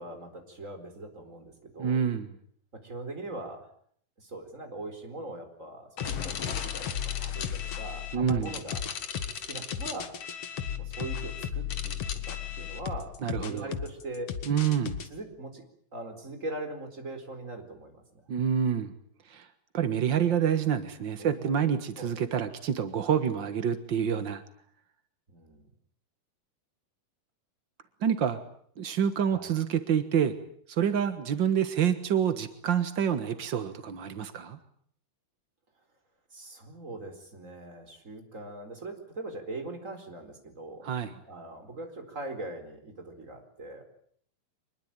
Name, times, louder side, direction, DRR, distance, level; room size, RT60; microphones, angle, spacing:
voice 1, 0.0-2.0 2.8-3.7 4.2-8.8 9.5-10.1 10.8-12.0 12.3-14.3 15.1-15.6 15.9-18.2 21.2-22.1 25.3-25.7 29.3-29.5 36.3-40.9 41.2-43.8, right 2 dB, 20° right, 6 dB, 4.4 m, -41 dB
voice 2, 1.8-2.3 8.1-8.5 13.2-13.7 14.4-15.0 18.3-18.9 19.3-19.5 19.7-24.4 28.0-28.4 28.8-30.3 30.7-34.6 40.8-41.1, right 8 dB, 70° right, 10 dB, 1.1 m, -27 dB
sound 1, 6.0-15.1, left 8 dB, 50° left, 2.2 m, -34 dB
25.5 x 21.5 x 9.0 m, 0.63 s
omnidirectional pair, 4.3 m